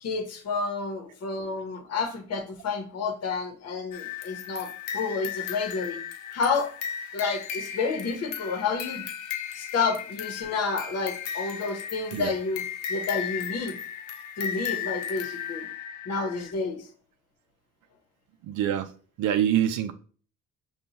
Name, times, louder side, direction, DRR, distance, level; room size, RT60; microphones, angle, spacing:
voice 1, 0.0-6.0 6.3-6.7 7.1-9.0 9.5-13.8 14.4-15.7 16.1-16.9, left 4 dB, 55° left, 0.9 m, -30 dB
sound 1, 3.9-16.5, left 8 dB, 75° left, 0.6 m, -36 dB
voice 2, 18.5-18.9 19.2-19.9, right 10 dB, 80° right, 0.5 m, -25 dB
5.3 x 2.3 x 2.8 m
cardioid pair, 90°, 30 cm